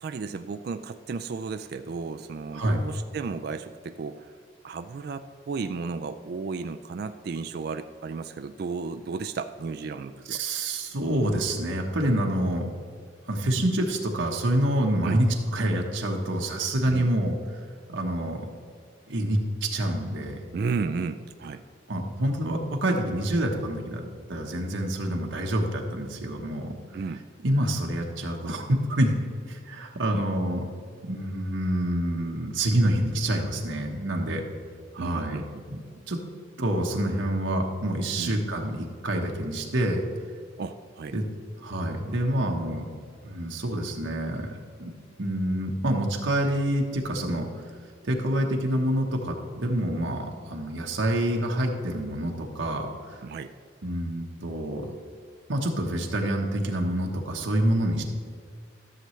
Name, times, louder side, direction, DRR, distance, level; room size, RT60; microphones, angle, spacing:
voice 1, 0.0-4.3 4.6-10.4 15.0-15.2 16.9-17.1 20.5-21.6 26.9-27.2 30.1-30.3 35.0-35.6 38.2-38.4 40.6-41.1 53.2-53.5, right 4 dB, 50° right, 8 dB, 0.3 m, -33 dB
voice 2, 10.3-12.7 13.3-18.5 19.1-20.4 21.9-26.7 27.4-29.1 29.5-30.7 31.0-34.4 34.9-35.4 35.7-35.8 36.1-36.2 36.6-40.0 41.1-41.2 41.6-42.9 43.2-44.9 45.2-47.6 48.0-53.2 53.8-54.9 55.5-58.0, right 1 dB, 75° right, 1 dB, 1.1 m, -27 dB
13.5 x 6.8 x 3.2 m, 2.1 s
head